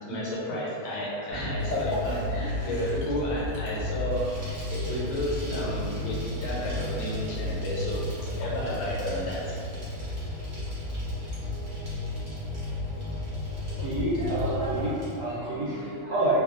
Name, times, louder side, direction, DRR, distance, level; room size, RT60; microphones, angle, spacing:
voice 1, 0.0-4.3 4.7-8.0 8.4-9.5, equal, 85° left, -5 dB, 1.6 m, -32 dB
sound 1, 1.3-14.8, left 1 dB, 50° left, 0.6 m, -33 dB
sound 2, 1.6-11.4, left 2 dB, 70° left, 1.1 m, -43 dB
Bicycle, 1.6-15.2, equal, 50° right, 0.7 m, -48 dB
voice 2, 13.8-16.4, right 1 dB, 70° right, -8 dB, 1.1 m, -28 dB
3.3 x 2.3 x 2.4 m, 2.4 s
omnidirectional pair, 2.3 m